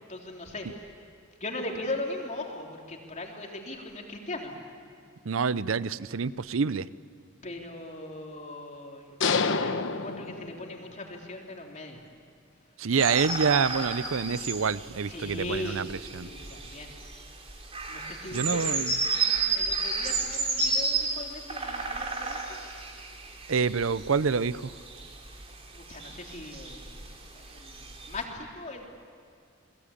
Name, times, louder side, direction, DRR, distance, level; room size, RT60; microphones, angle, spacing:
voice 1, 0.1-0.9 1.4-4.5 7.4-12.0 15.1-16.9 17.9-22.4 25.7-26.9 27.3-28.9, left 2 dB, 35° left, 0 dB, 3.6 m, -39 dB
voice 2, 5.2-6.9 12.8-16.3 18.3-18.9 23.5-24.7, right 5 dB, 70° right, 17 dB, 0.6 m, -27 dB
sound 1, 9.2-11.0, left 4 dB, 65° left, 1.1 m, -28 dB
sound 2, 13.0-28.2, right 4 dB, 30° right, 2.9 m, -32 dB
30.0 x 21.0 x 8.6 m, 2.2 s
head